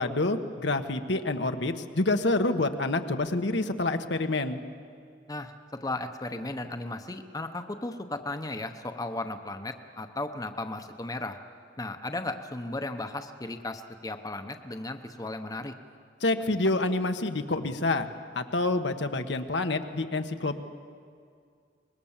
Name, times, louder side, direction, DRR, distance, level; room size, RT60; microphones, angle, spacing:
voice 1, 0.0-4.6 16.2-18.1 18.3-20.6, left 2 dB, 75° left, 7 dB, 1.2 m, -27 dB
voice 2, 5.8-11.4 11.8-15.7, left 2 dB, 20° left, 7 dB, 0.9 m, -35 dB
24.5 x 21.0 x 7.3 m, 2.3 s
head